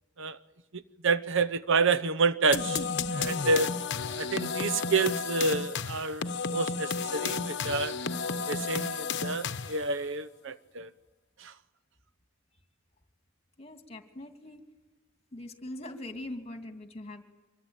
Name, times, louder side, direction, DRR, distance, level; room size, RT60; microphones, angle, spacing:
voice 1, 0.7-2.8 3.1-3.7 4.2-7.9 8.5-10.9 11.4-11.5, right 4 dB, 65° right, 0.8 m, -29 dB
sound 1, 2.5-9.9, left 5 dB, 55° left, 1.0 m, -32 dB
voice 2, 13.6-14.6 15.3-17.2, left 1 dB, 30° left, 2.6 m, -42 dB
25.5 x 22.0 x 9.0 m
head